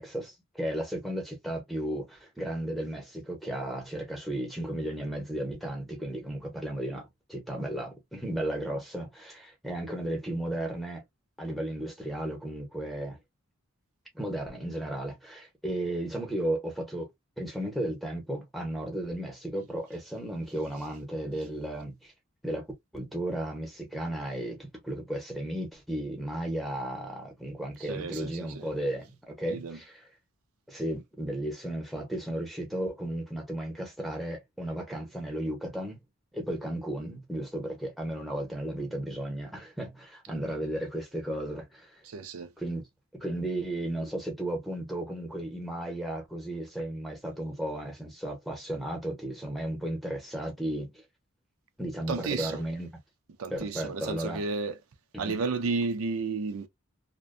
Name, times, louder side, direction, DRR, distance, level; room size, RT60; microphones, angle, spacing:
voice 1, 0.0-11.0 11.4-13.2 14.1-17.1 17.4-22.1 22.4-22.7 22.9-29.8 30.7-36.0 36.3-41.9 42.6-42.8 43.1-50.9 51.8-52.9 53.5-54.4 55.1-55.4, right 1 dB, ahead, 0.8 m, -34 dB
voice 2, 27.8-28.7 29.5-29.8 42.0-42.5 52.1-52.6 53.4-54.8 55.2-56.7, right 4 dB, 80° right, 0.5 m, -32 dB
2.5 x 2.2 x 2.5 m
head